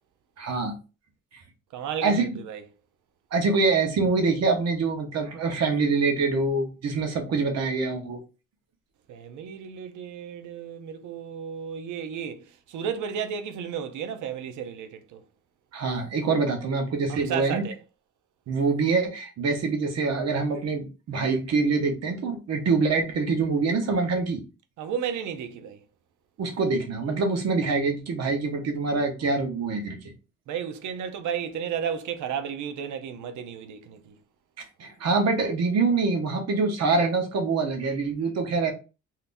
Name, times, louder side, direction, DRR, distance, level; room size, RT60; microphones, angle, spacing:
voice 1, 0.4-0.7 2.0-2.3 3.3-8.2 15.7-17.6 18.5-24.4 26.4-30.0 34.6-38.7, right 4 dB, 60° right, 1.0 m, -25 dB
voice 2, 1.7-2.6 9.1-15.2 17.1-17.8 24.8-25.8 30.5-34.1, right 7 dB, 75° right, 0.6 m, -33 dB
3.5 x 2.8 x 2.6 m
cardioid pair, 90°, 30 cm